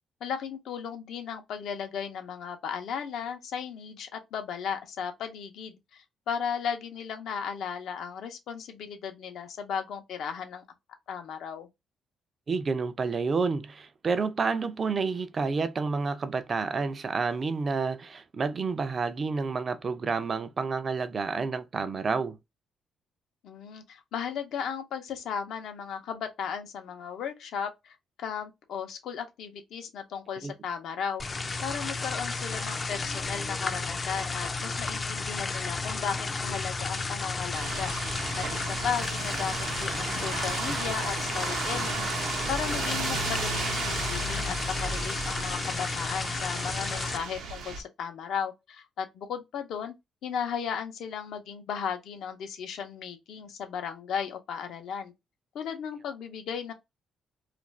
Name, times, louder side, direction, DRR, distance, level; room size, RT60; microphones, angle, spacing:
voice 1, 0.2-10.6 11.1-11.7 23.4-31.2 31.6-37.9 38.4-42.0 42.5-49.9 50.2-55.1 55.5-56.7, left 7 dB, 75° left, 0.6 m, -35 dB
voice 2, 12.5-22.4 30.4-30.5, right 4 dB, 40° right, 0.4 m, -29 dB
sound 1, 31.2-47.2, left 3 dB, 30° left, 0.4 m, -33 dB
sound 2, 37.5-47.8, right 4 dB, 90° right, 0.7 m, -34 dB
2.5 x 2.3 x 3.1 m
cardioid pair, 105°, 0 cm